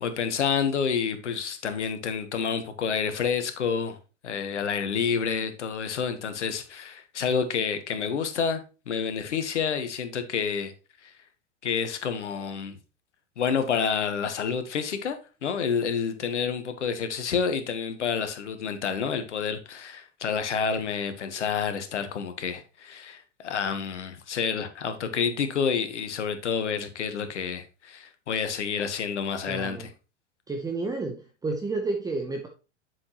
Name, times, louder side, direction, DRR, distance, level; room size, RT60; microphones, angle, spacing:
voice 1, 0.0-4.0 4.2-10.7 11.0-11.1 11.6-12.8 13.4-29.9, left 6 dB, 75° left, 1.3 m, -29 dB
voice 2, 29.5-29.9 30.5-32.5, right 3 dB, 10° right, 0.8 m, -31 dB
7.6 x 5.9 x 3.0 m
hypercardioid pair, 100°, 36 cm